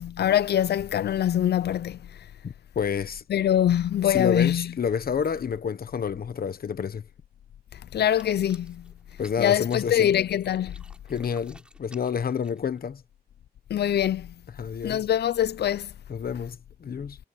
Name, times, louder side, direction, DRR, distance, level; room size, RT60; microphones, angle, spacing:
voice 1, 0.0-2.0 3.3-4.7 7.9-8.8 9.4-10.8 13.7-14.3 14.8-15.9, left 10 dB, 90° left, 0.4 m, -23 dB
voice 2, 2.4-3.2 4.0-7.0 9.2-10.1 11.1-13.0 14.6-15.1 16.1-17.2, left 7 dB, 65° left, 1.1 m, -29 dB
sound 1, 8.1-12.9, right 1 dB, 5° right, 6.9 m, -55 dB
wide cardioid pair, 150°, 17 cm